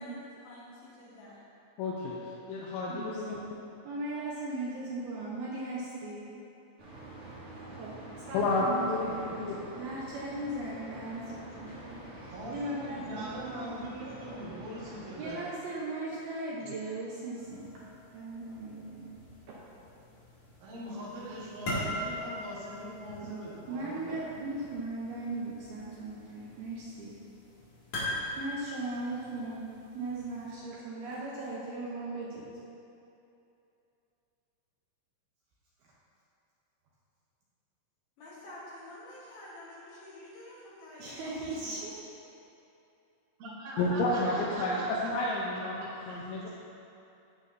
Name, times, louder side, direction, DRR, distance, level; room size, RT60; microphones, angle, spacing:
voice 1, 0.0-1.4 38.2-41.9, left 1 dB, 65° left, -8 dB, 2.7 m, -49 dB
voice 2, 1.8-3.4 8.3-9.1 9.4-9.6 16.6-16.7 43.8-46.5, left 2 dB, 80° left, -4 dB, 2.9 m, -31 dB
voice 3, 3.8-6.2 7.8-8.0 8.3-13.3 15.2-17.7 18.1-19.2 23.1-23.4 23.7-27.2 28.4-29.6 29.9-32.5 41.0-41.9, right 2 dB, 75° right, -6 dB, 2.3 m, -38 dB
sound 1, 6.8-15.3, right 1 dB, 45° right, 2.1 m, -46 dB
voice 4, 12.3-15.5 20.6-24.2 43.4-44.8, right 1 dB, 60° right, -7 dB, 2.8 m, -41 dB
sound 2, 17.3-30.5, left 1 dB, 45° left, 2.8 m, -42 dB
15.0 x 6.3 x 2.7 m, 2.8 s
omnidirectional pair, 5.5 m